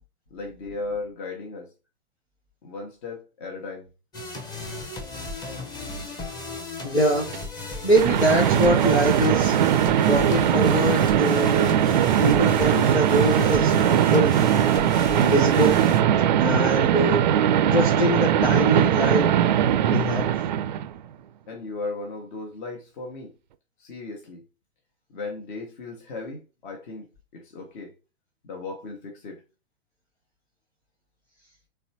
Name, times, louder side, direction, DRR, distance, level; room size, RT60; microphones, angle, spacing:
voice 1, 0.3-1.7 2.6-3.9 21.5-23.3 23.8-24.4 25.1-27.9 28.4-29.4, left 3 dB, 50° left, 1.2 m, -36 dB
sound 1, 4.1-16.0, left 2 dB, 10° left, 0.8 m, -35 dB
voice 2, 6.8-7.3 7.8-9.5 10.0-11.7 12.2-14.4 15.2-15.8 16.4-17.3 17.7-19.3 19.9-20.3, equal, 90° left, 1.1 m, -23 dB
sound 2, 7.3-7.4 7.9-21.0, right 10 dB, 45° right, 0.4 m, -20 dB
4.1 x 3.4 x 2.8 m
figure-of-eight pair, 105°, 32 cm